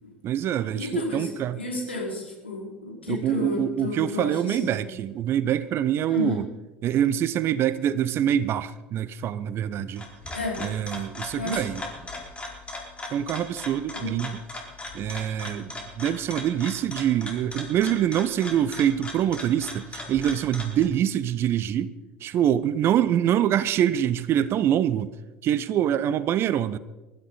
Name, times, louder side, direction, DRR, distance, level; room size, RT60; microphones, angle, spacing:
voice 1, 0.2-1.6 3.1-6.5 6.8-10.0 10.6-11.9 13.1-14.4 14.9-21.9 22.2-25.1 25.4-26.8, right 10 dB, 40° right, 0.8 m, -25 dB
voice 2, 0.8-1.3 1.5-4.8 6.0-6.4 10.3-10.6 11.3-11.6 13.9-14.1, left 3 dB, 85° left, 4.8 m, -32 dB
sound 1, 9.7-20.8, left 2 dB, 20° left, 4.3 m, -38 dB
23.5 x 13.0 x 4.1 m
figure-of-eight pair, 70°, 6 cm